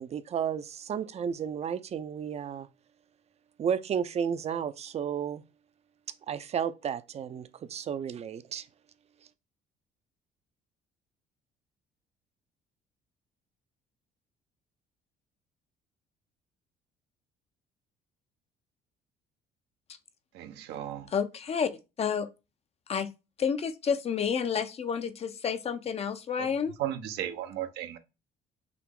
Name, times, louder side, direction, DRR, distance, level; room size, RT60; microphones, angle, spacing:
voice 1, 0.0-2.7 3.6-5.4 6.3-8.7, right 8 dB, 40° right, 0.5 m, -32 dB
voice 2, 20.3-21.1 26.4-26.5 26.8-28.0, right 11 dB, 85° right, 0.8 m, -35 dB
voice 3, 21.1-21.7 22.0-22.3 22.9-23.1 23.4-26.7, left 7 dB, 35° left, 0.6 m, -30 dB
5.8 x 2.0 x 3.6 m
cardioid pair, 110°, 17 cm